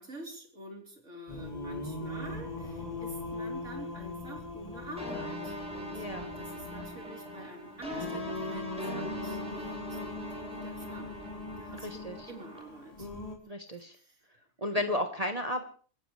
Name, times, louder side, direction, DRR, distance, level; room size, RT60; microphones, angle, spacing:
voice 1, 0.0-6.0 6.4-11.2 11.6-13.1 13.8-14.2 14.8-14.9, right 1 dB, 60° right, 1 dB, 4.2 m, -47 dB
Singing, 1.3-13.4, left 2 dB, 25° left, 3.4 m, -41 dB
sound 1, 5.0-12.6, left 1 dB, 5° right, 6.1 m, -41 dB
voice 2, 5.9-6.3 11.7-12.3 13.5-14.0 14.6-15.6, left 1 dB, 30° right, 5 dB, 1.3 m, -33 dB
26.0 x 15.0 x 3.3 m, 0.43 s
omnidirectional pair, 1.5 m